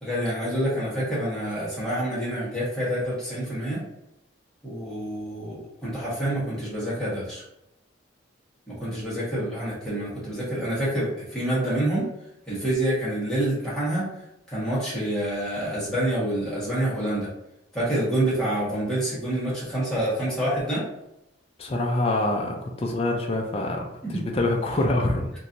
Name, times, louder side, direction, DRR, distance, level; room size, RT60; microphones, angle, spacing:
voice 1, 0.0-3.8 4.6-7.4 8.7-12.1 12.5-14.1 14.5-17.3 17.7-20.9 24.1-24.2, right 1 dB, 5° left, -10 dB, 1.3 m, -27 dB
voice 2, 21.6-25.3, left 2 dB, 30° left, 1 dB, 0.4 m, -25 dB
3.0 x 2.6 x 2.5 m, 0.86 s
head